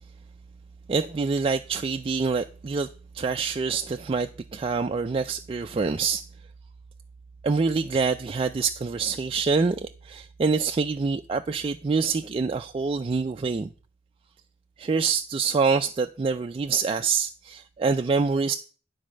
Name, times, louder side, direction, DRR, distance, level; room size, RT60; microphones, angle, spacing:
voice 1, 0.9-2.9 3.1-6.2 7.4-13.7 14.8-18.5, right 4 dB, 30° right, 0.3 m, -26 dB
9.9 x 4.2 x 6.3 m
head